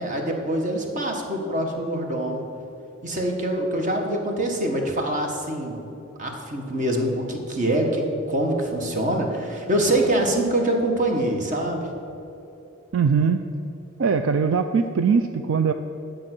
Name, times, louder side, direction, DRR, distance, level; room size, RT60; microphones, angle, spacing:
voice 1, 0.0-2.4 3.0-5.8 6.2-11.9, right 1 dB, 35° right, 2 dB, 1.3 m, -24 dB
voice 2, 12.9-13.4 14.0-15.7, right 5 dB, 65° right, 8 dB, 0.4 m, -21 dB
10.5 x 6.6 x 6.1 m, 3.0 s
head